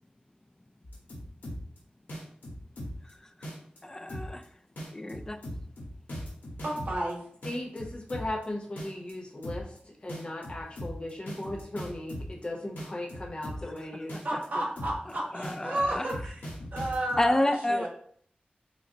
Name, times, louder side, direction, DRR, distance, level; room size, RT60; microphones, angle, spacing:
sound 1, 0.8-1.8 2.1-3.1 3.4-3.8 4.1-4.4 4.8-7.1 7.4-8.4 8.8-9.1 9.4-9.8 10.1-12.4 12.8-13.8 14.1-14.4 14.8-15.1 15.4-17.2, equal, 85° left, 1.3 m, -39 dB
voice 1, 3.8-4.4 4.9-5.4 13.8-14.2 15.3-16.1 17.2-17.9, left 1 dB, 15° left, 7 dB, 0.3 m, -29 dB
voice 2, 6.6-7.2 14.2-16.4 16.7-17.9, right 1 dB, 60° right, -3 dB, 1.0 m, -32 dB
voice 3, 7.4-9.7 10.0-14.2 14.5-14.6, left 1 dB, 35° left, 1 dB, 0.7 m, -37 dB
5.0 x 2.0 x 2.7 m, 0.62 s
wide cardioid pair, 100°, 3 cm